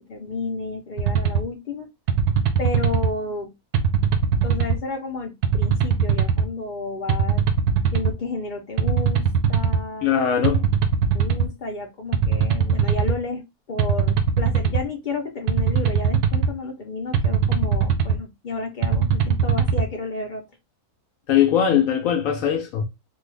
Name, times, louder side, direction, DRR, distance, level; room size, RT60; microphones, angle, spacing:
voice 1, 0.0-1.9 2.6-3.5 4.4-7.4 7.9-10.1 11.1-20.5, left 3 dB, 85° left, 0.4 m, -31 dB
sound 1, 1.0-1.4 2.1-3.1 3.7-4.8 5.4-6.5 7.1-8.1 8.8-9.8 10.4-11.5 12.1-13.2 13.8-14.8 15.5-16.5 17.1-18.2 18.8-19.8, right 6 dB, 90° right, 1.1 m, -20 dB
voice 2, 10.0-10.7 21.3-22.8, left 9 dB, 70° left, 0.9 m, -20 dB
3.2 x 2.3 x 3.2 m
omnidirectional pair, 1.6 m